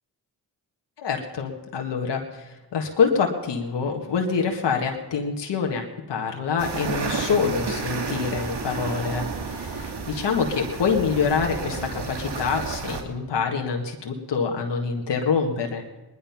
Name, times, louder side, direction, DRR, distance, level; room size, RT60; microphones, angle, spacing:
voice 1, 1.0-15.9, left 5 dB, 85° left, 2 dB, 1.7 m, -26 dB
sound 1, 6.6-13.0, right 4 dB, 70° right, 1.9 m, -31 dB
19.5 x 11.0 x 5.8 m, 1.1 s
cardioid pair, 50°, 41 cm